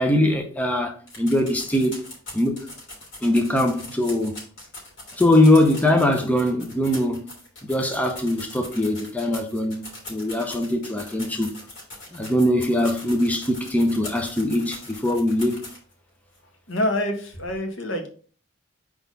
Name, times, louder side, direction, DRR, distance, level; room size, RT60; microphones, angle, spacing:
voice 1, 0.0-1.9 2.3-2.6 3.2-4.4 5.1-7.3 7.6-11.5 12.1-15.6, left 1 dB, 10° left, 0.7 m, -21 dB
sound 1, 1.1-15.9 16.3-16.4 16.7-16.8, left 2 dB, 65° left, 3.3 m, -41 dB
voice 2, 16.7-18.1, left 1 dB, 85° left, 1.4 m, -26 dB
4.6 x 4.0 x 5.3 m
head